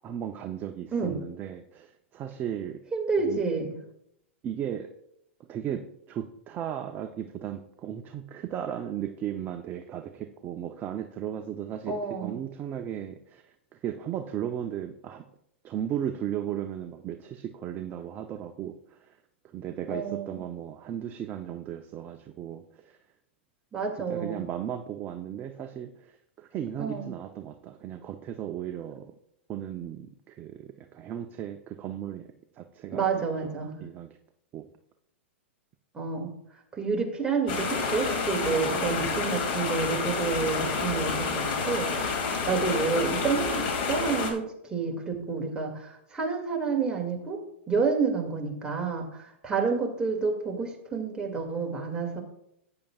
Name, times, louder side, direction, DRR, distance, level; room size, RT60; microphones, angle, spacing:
voice 1, 0.0-2.8 3.2-3.4 4.4-4.9 5.5-15.2 15.6-19.2 19.5-23.0 24.1-29.1 29.5-32.3 32.5-34.1 34.5-34.7 38.4-39.2, right 10 dB, 30° right, 6 dB, 0.6 m, -36 dB
voice 2, 2.9-3.7 11.9-12.4 19.9-20.4 23.7-24.4 26.8-27.1 32.9-33.8 35.9-36.3 36.7-47.4 47.7-52.2, right 5 dB, 15° right, 0 dB, 2.2 m, -29 dB
sound 1, 37.5-44.3, left 4 dB, 55° left, 2.4 m, -29 dB
13.5 x 8.9 x 2.4 m, 0.75 s
hypercardioid pair, 110°, 7 cm